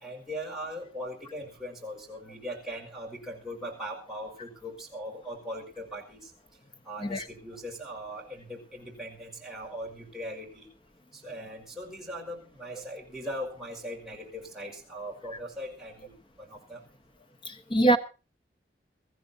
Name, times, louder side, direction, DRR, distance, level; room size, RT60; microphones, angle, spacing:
voice 1, 0.0-6.2 6.8-10.6 11.1-16.1 16.4-16.8, equal, ahead, 5.0 m, -40 dB
voice 2, 17.4-18.0, right 2 dB, 25° left, 1.1 m, -23 dB
23.5 x 14.5 x 2.7 m
head